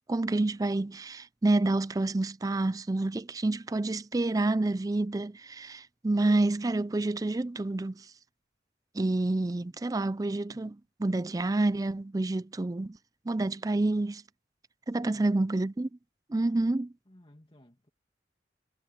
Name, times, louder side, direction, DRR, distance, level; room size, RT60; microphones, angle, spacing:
voice 1, 0.1-8.1 8.9-10.7 11.0-13.0 13.3-14.2 14.9-15.9 16.3-16.9, right 2 dB, 20° right, 0.4 m, -28 dB
voice 2, 14.9-15.5 17.1-17.9, left 1 dB, 30° left, 2.3 m, -57 dB
head